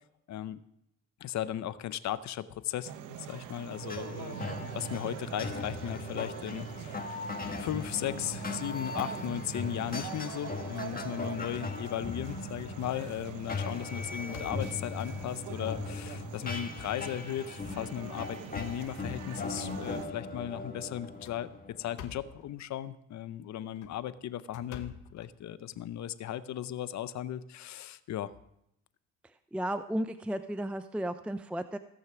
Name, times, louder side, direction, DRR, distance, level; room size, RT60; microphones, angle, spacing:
voice 1, 0.3-0.6 1.2-7.1 7.6-21.5 21.8-28.3, left 11 dB, 65° left, 15 dB, 0.7 m, -36 dB
sound 1, 2.8-20.1, right 10 dB, 90° right, 0.8 m, -44 dB
sound 2, 3.7-22.5, left 3 dB, 30° left, 1.5 m, -39 dB
sound 3, 12.1-12.4 12.9-13.1 13.5-15.1 15.8-15.9 16.3-16.4 17.3-17.6 18.0-19.5 21.0-22.5 23.6-25.8, left 8 dB, 90° left, 1.1 m, -49 dB
voice 2, 29.5-31.8, right 1 dB, 5° right, 11 dB, 0.4 m, -34 dB
16.5 x 6.5 x 6.0 m, 0.80 s
cardioid pair, 90°, 30 cm